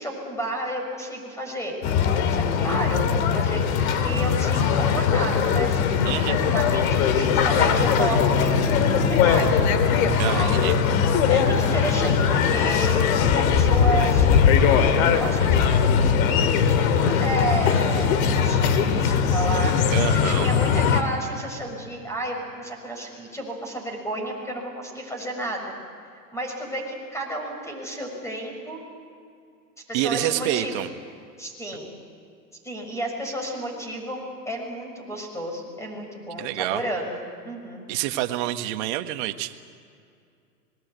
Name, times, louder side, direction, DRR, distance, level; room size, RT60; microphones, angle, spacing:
voice 1, 0.0-1.8 2.3-8.6 9.1-9.6 10.2-10.7 11.3-14.3 15.2-15.6 16.7-19.7 20.1-25.7 26.3-28.8 29.9-30.8 31.4-31.9 32.6-37.8, right 1 dB, 5° left, 2 dB, 6.3 m, -32 dB
sound 1, 1.8-21.0, left 7 dB, 55° left, 2.5 m, -20 dB
voice 2, 6.0-6.4 10.2-10.7 19.9-20.5 29.9-30.9 36.4-36.8 37.9-39.5, right 14 dB, 45° right, 7 dB, 1.7 m, -27 dB
Bowed string instrument, 7.2-12.7, equal, 25° left, 7.2 m, -29 dB
26.5 x 21.0 x 8.3 m, 2.4 s
hypercardioid pair, 125°, 48 cm